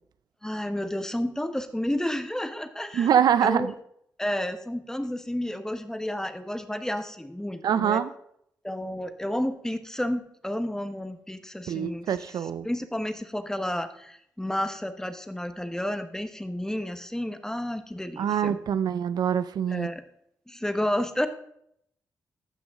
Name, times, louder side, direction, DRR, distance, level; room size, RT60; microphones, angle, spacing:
voice 1, 0.4-3.1 3.4-3.7 4.2-8.0 8.6-18.6 19.7-20.0 20.5-21.3, left 1 dB, 5° left, 9 dB, 1.2 m, -31 dB
voice 2, 2.9-3.7 7.6-8.1 11.7-12.7 18.2-19.9, right 8 dB, 70° right, 14 dB, 0.4 m, -24 dB
14.5 x 6.0 x 3.7 m, 0.71 s
supercardioid pair, 45°, 7 cm